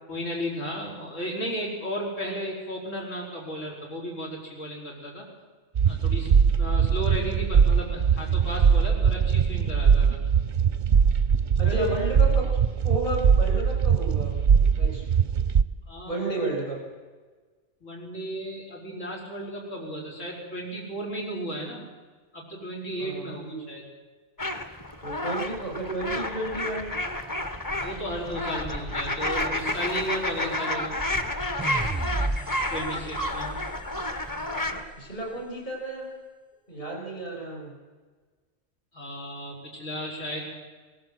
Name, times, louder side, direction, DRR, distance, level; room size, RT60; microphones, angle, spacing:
voice 1, 0.1-5.3 5.9-6.3 6.6-10.2 11.6-11.9 15.9-16.4 17.8-21.8 22.3-23.8 27.8-31.0 32.7-33.5 38.9-40.4, equal, 85° left, -2 dB, 5.5 m, -34 dB
sound 1, 5.8-15.6, right 6 dB, 45° right, 0.7 m, -21 dB
voice 2, 11.6-12.4 12.8-14.3 14.7-15.0 16.1-16.8 23.0-23.7 25.0-26.9 32.4-32.5 34.7-36.1 36.7-37.7, right 2 dB, 45° left, 0 dB, 6.8 m, -32 dB
sound 2, 24.4-34.8, left 1 dB, 15° left, 1.2 m, -30 dB
sound 3, 31.6-34.8, right 2 dB, 5° right, 0.8 m, -34 dB
20.0 x 17.5 x 7.8 m, 1.4 s
omnidirectional pair, 1.3 m